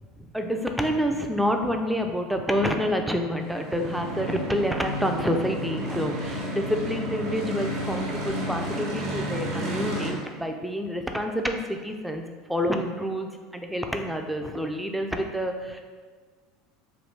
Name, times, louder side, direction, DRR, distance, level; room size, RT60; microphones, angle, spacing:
voice 1, 0.2-12.2 12.5-15.8, equal, 5° right, 4 dB, 0.3 m, -28 dB
sound 1, 3.4-10.1, equal, 70° right, 1.0 m, -31 dB
3.1 x 2.2 x 3.3 m, 1.5 s
supercardioid pair, 105°, 0 cm